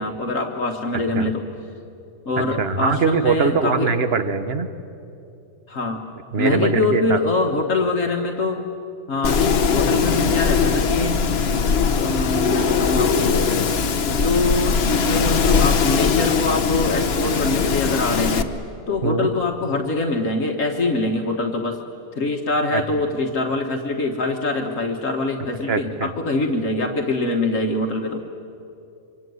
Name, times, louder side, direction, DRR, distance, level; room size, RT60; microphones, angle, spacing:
voice 1, 0.0-1.4 2.3-3.9 5.7-6.0 6.4-8.6 9.1-11.2 11.9-13.5 14.1-18.5 18.9-21.8 22.2-28.2, left 2 dB, 65° left, 3 dB, 1.8 m, -24 dB
voice 2, 2.6-4.7 6.3-7.2 19.0-19.3 22.7-22.8 25.7-26.1, right 5 dB, 50° right, 10 dB, 1.5 m, -21 dB
Wind, 9.2-18.4, left 6 dB, 50° left, 1.2 m, -20 dB
25.5 x 25.0 x 9.5 m, 2.7 s
omnidirectional pair, 1.5 m